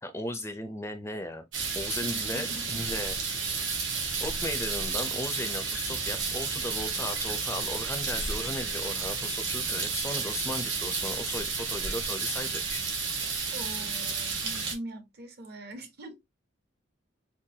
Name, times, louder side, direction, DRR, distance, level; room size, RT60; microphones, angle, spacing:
voice 1, 0.0-1.4 1.8-3.2 4.2-12.8, left 1 dB, 15° left, 0.4 m, -36 dB
sound 1, 1.5-14.7, right 4 dB, 75° right, 1.3 m, -32 dB
voice 2, 2.0-2.9 13.5-16.2, right 1 dB, 55° right, 0.8 m, -42 dB
3.8 x 2.2 x 2.6 m
head